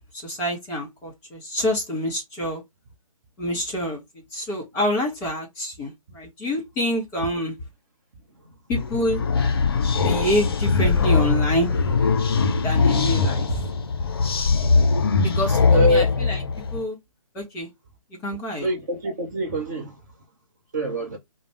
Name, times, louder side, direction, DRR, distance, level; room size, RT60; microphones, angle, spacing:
voice 1, 0.1-2.6 3.4-4.0 4.3-7.5 8.7-9.2 10.0-11.7 12.6-13.6 15.2-16.4 16.7-17.0 17.3-17.7 18.2-18.7, equal, 15° left, 1.7 m, -27 dB
sound 1, 8.8-16.8, left 4 dB, 45° left, 0.6 m, -21 dB
voice 2, 15.7-16.2 18.6-20.0 20.7-21.2, equal, 30° right, 1.0 m, -24 dB
5.0 x 2.1 x 3.2 m
figure-of-eight pair, 140°, 18 cm